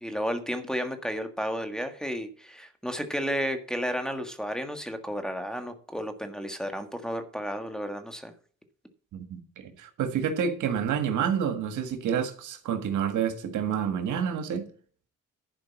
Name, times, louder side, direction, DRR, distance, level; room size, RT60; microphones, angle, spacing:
voice 1, 0.0-8.3, equal, ahead, 5 dB, 1.6 m, -32 dB
voice 2, 9.1-14.6, right 8 dB, 80° right, 7 dB, 1.7 m, -29 dB
11.5 x 5.0 x 7.3 m, 0.44 s
cardioid pair, 90°, 30 cm